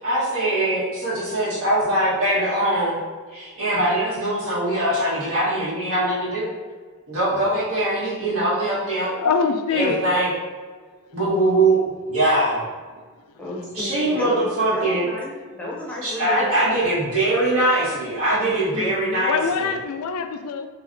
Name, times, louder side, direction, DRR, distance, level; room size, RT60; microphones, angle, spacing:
voice 1, 0.0-3.0 3.3-6.5 7.1-9.1 9.7-10.3 11.1-12.6 13.7-15.1 16.0-19.7, right 1 dB, 70° right, 1.4 m, -22 dB
voice 2, 9.1-10.1 19.3-20.7, left 5 dB, 80° left, 0.3 m, -24 dB
voice 3, 13.4-16.6 18.7-19.3, left 1 dB, 5° left, 0.7 m, -32 dB
4.2 x 2.9 x 2.6 m
head